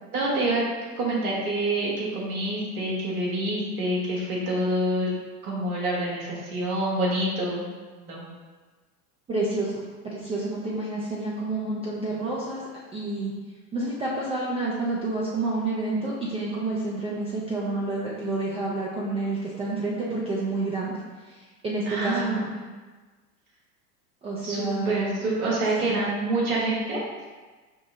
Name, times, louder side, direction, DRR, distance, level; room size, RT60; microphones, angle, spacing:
voice 1, 0.1-0.7 1.0-5.1 5.4-7.7 8.0-8.3 21.9-22.4 24.4-27.0, right 1 dB, 65° right, -4 dB, 1.4 m, -27 dB
voice 2, 9.3-9.8 10.1-12.6 12.9-13.3 13.7-21.0 21.3-22.5 24.2-25.1 25.9-26.0, right 2 dB, 15° right, -6 dB, 0.4 m, -29 dB
5.6 x 2.0 x 3.7 m, 1.3 s
figure-of-eight pair, 85°, 48 cm